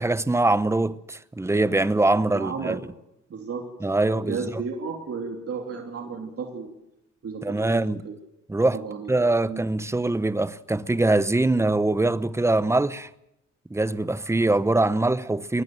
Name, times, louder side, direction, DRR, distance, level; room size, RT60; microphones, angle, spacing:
voice 1, 0.0-2.8 3.8-4.5 7.4-8.0 8.5-8.8 9.1-13.1 13.7-15.6, right 2 dB, 10° right, 0.9 m, -23 dB
voice 2, 2.3-2.8 3.3-3.7 4.0-6.7 7.2-8.1 8.7-9.1 9.5-9.6, right 5 dB, 50° right, 3.2 m, -33 dB
23.0 x 18.5 x 7.8 m
cardioid pair, 90°, 30 cm